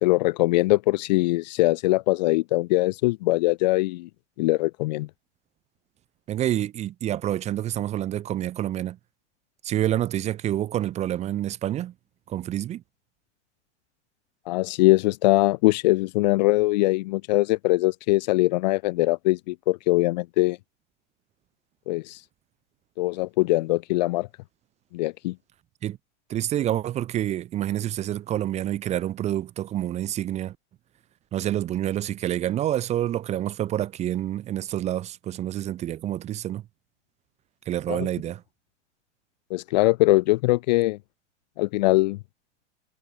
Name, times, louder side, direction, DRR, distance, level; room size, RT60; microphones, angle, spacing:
voice 1, 0.0-4.1 4.4-5.1 14.5-20.6 21.9-22.2 23.0-24.3 24.9-25.3 37.9-38.1 39.5-41.0 41.6-42.2, left 20 dB, 35° left, 0.6 m, -22 dB
voice 2, 6.3-9.0 9.6-11.9 12.3-12.8 25.8-26.0 26.3-30.5 31.3-36.6 37.7-38.4, right 12 dB, 20° right, 0.8 m, -28 dB
figure-of-eight pair, 100°, 37 cm